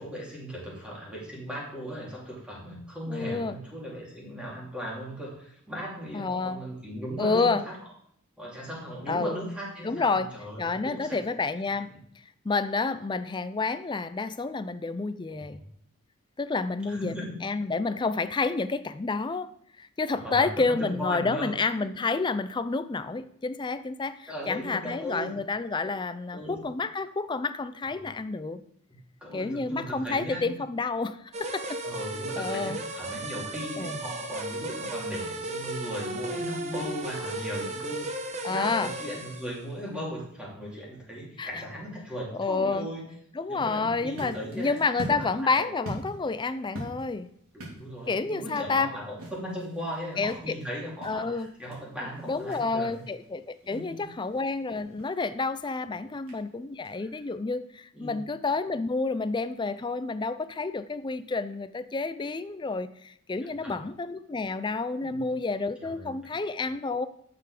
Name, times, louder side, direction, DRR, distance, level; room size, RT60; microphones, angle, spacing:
voice 1, 0.0-7.6 8.4-11.2 15.4-15.5 16.9-17.4 20.1-21.9 24.3-25.4 26.3-26.6 29.2-30.6 31.8-43.1 43.5-44.8 45.2-45.3 45.6-45.7 47.7-53.0 53.6-54.1 57.9-58.2 63.6-63.7 65.1-65.2 65.8-66.1, equal, 5° right, -5 dB, 2.9 m, -37 dB
voice 2, 3.1-3.6 6.1-6.6 7.2-7.6 9.1-9.4 9.8-10.3 10.6-11.9 12.4-15.6 16.4-19.5 19.8-28.6 29.3-31.8 32.4-32.8 33.8-34.0 38.4-38.9 41.4-41.5 42.3-42.9 43.3-47.3 48.1-48.9 50.2-50.5 51.0-51.5 52.3-67.1, left 3 dB, 20° left, 12 dB, 0.4 m, -29 dB
sound 1, 31.3-39.6, right 2 dB, 30° right, 1.0 m, -35 dB
sound 2, 43.8-57.3, right 1 dB, 85° right, 3.3 m, -45 dB
10.0 x 6.9 x 4.9 m, 0.68 s
head